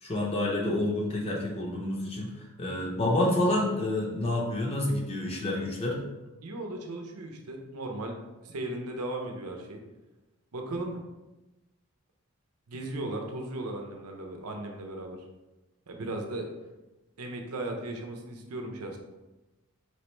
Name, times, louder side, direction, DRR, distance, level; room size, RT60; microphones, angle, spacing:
voice 1, 0.0-2.3 2.6-6.0, left 1 dB, 25° left, -2 dB, 0.6 m, -28 dB
voice 2, 6.4-8.2 8.4-9.8 10.5-11.0 12.7-15.2 15.9-16.5 17.2-19.0, right 2 dB, 90° right, 3 dB, 0.7 m, -36 dB
4.5 x 3.3 x 3.1 m, 1.1 s
head